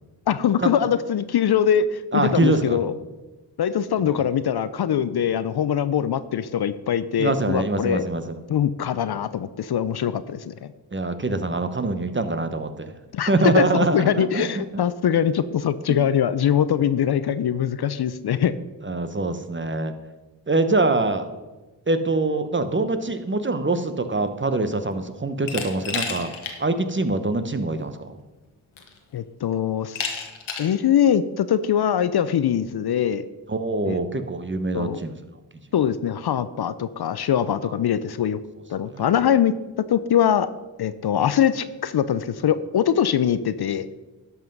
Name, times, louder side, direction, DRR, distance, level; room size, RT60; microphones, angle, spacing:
voice 1, 0.3-2.9 3.6-8.0 8.5-10.7 13.1-13.7 13.9-18.6 29.1-30.3 30.6-33.3 33.9-34.0 34.7-35.0 35.7-38.4 38.7-39.5 39.9-40.5 40.8-43.9, left 9 dB, 55° left, 14 dB, 0.6 m, -22 dB
voice 2, 2.1-2.8 4.1-4.2 7.2-8.3 10.9-12.9 13.3-14.8 15.9-16.0 18.8-19.9 20.5-21.3 21.9-28.2 33.5-35.2 38.9-39.1, right 2 dB, 25° right, 9 dB, 1.0 m, -24 dB
Glass, 25.5-26.6 27.0-27.1 28.2-28.3 28.8-29.2 30.0-30.8, left 6 dB, 85° left, 1.4 m, -31 dB
11.5 x 5.6 x 5.3 m, 1.1 s
supercardioid pair, 40°, 47 cm